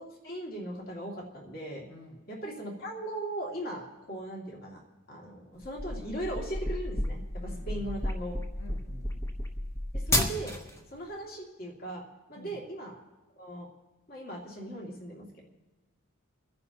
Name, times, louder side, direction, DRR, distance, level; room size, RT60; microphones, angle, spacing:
voice 1, 0.0-1.9 2.3-4.8 5.1-8.4 9.9-10.6 10.9-12.0 12.3-13.0 13.4-13.7 14.1-15.4, right 1 dB, 45° left, -2 dB, 2.4 m, -39 dB
voice 2, 1.9-2.2 7.4-7.9 8.5-9.4 12.4-12.6, equal, 75° left, -2 dB, 1.9 m, -49 dB
sound 1, 5.6-10.8, left 1 dB, 15° left, 0.8 m, -32 dB
30.0 x 10.5 x 2.9 m, 1.2 s
head